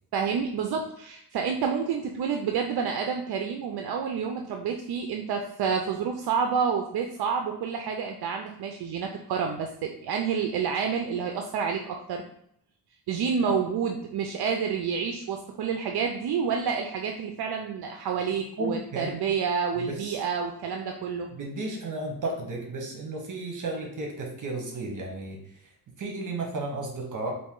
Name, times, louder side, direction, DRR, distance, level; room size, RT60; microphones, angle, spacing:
voice 1, 0.1-12.2 13.1-21.3, right 6 dB, 70° right, 3 dB, 0.5 m, -29 dB
voice 2, 18.6-19.2 19.8-20.2 21.3-25.4 26.0-27.3, right 2 dB, 50° right, 1 dB, 1.0 m, -33 dB
4.1 x 2.7 x 3.7 m, 0.72 s
wide cardioid pair, 120°, 39 cm